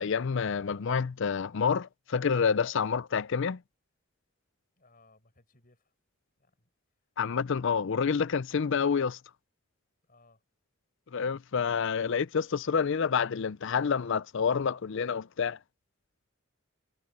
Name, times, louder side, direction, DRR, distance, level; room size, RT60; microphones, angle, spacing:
voice 1, 0.0-3.6 7.2-9.2 11.1-15.6, left 6 dB, 60° left, 0.5 m, -28 dB
voice 2, 4.8-5.9 6.4-6.7 10.0-10.4, left 2 dB, 45° left, 6.6 m, -63 dB
head